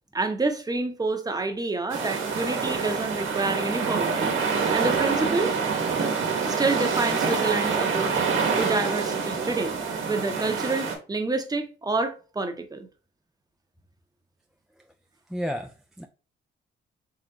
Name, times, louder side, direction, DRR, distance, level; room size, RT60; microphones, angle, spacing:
voice 1, 0.1-4.4 4.7-5.5 6.4-12.9, right 3 dB, 20° right, 0.8 m, -28 dB
sound 1, 1.9-10.9, right 5 dB, 80° right, 1.1 m, -26 dB
voice 2, 15.3-16.1, equal, ahead, 0.3 m, -32 dB
3.8 x 3.3 x 2.9 m
cardioid pair, 90°, 20 cm